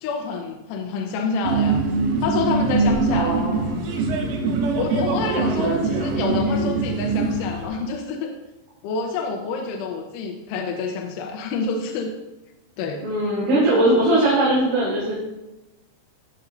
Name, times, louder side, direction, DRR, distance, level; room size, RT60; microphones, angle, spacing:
voice 1, 0.0-1.9 2.2-3.4 4.8-8.3 8.8-12.1 12.8-13.0, left 4 dB, 85° left, 1 dB, 3.1 m, -27 dB
sound 1, 1.4-7.7, right 3 dB, 85° right, 3.8 m, -23 dB
voice 2, 3.1-3.8 5.6-5.9 13.0-15.1, right 1 dB, 50° right, -9 dB, 4.2 m, -20 dB
16.5 x 7.1 x 2.6 m, 1.0 s
omnidirectional pair, 5.7 m